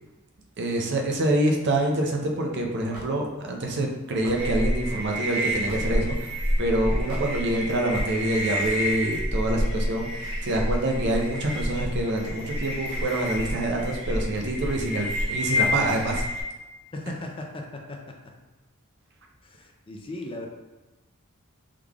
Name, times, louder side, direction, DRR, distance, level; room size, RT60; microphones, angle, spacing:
voice 1, 0.6-16.3, right 1 dB, 55° right, 1 dB, 0.5 m, -26 dB
Hammer / Wood, 2.9-3.1 4.2-4.4 5.7-6.0 7.1-7.3, right 1 dB, 90° right, 1.1 m, -39 dB
sound 1, 4.3-16.4, equal, 20° right, 1.0 m, -28 dB
voice 2, 16.9-18.3 19.4-20.5, left 2 dB, 25° left, 1 dB, 0.4 m, -38 dB
3.7 x 3.2 x 2.3 m, 1.1 s
head